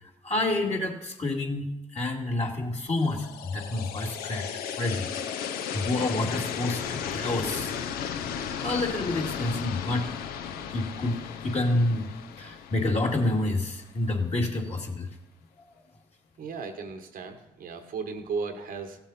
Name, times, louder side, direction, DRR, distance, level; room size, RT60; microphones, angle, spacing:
voice 1, 0.2-5.1 5.7-7.7 8.6-10.1 10.7-12.1 12.4-15.1, left 2 dB, 45° left, -1 dB, 2.3 m, -28 dB
sound 1, 2.9-13.9, left 8 dB, 85° left, 0.6 m, -35 dB
voice 2, 16.4-19.0, right 5 dB, 75° right, 6 dB, 1.1 m, -35 dB
16.0 x 7.1 x 4.2 m, 0.91 s
hypercardioid pair, 40°, 15 cm